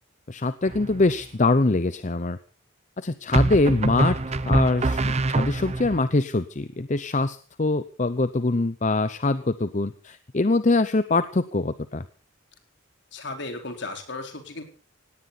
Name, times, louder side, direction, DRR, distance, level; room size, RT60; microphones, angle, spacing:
voice 1, 0.3-2.4 3.0-12.0, left 2 dB, 35° left, 13 dB, 0.7 m, -24 dB
sound 1, 0.7-1.2 3.3-6.0, right 2 dB, 30° right, 0.8 m, -24 dB
voice 2, 13.1-14.6, left 2 dB, 60° left, 5 dB, 4.3 m, -35 dB
18.5 x 17.5 x 4.1 m, 0.36 s
head